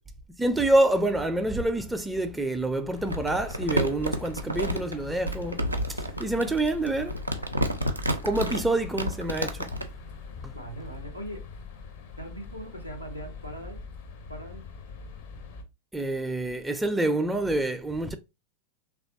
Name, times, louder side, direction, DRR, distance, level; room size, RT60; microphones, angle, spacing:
voice 1, 0.4-5.6 5.9-7.1 8.2-9.7 10.4-10.5 15.9-18.2, right 2 dB, 5° right, 0.4 m, -27 dB
sound 1, 2.9-15.6, left 5 dB, 50° left, 0.5 m, -43 dB
Crumpling crinkling, 3.1-9.9, right 1 dB, 85° right, 0.4 m, -30 dB
voice 2, 10.5-11.4 12.2-13.8 14.3-14.6, right 1 dB, 90° left, 0.7 m, -40 dB
3.1 x 2.3 x 2.5 m
figure-of-eight pair, 90°, 0 cm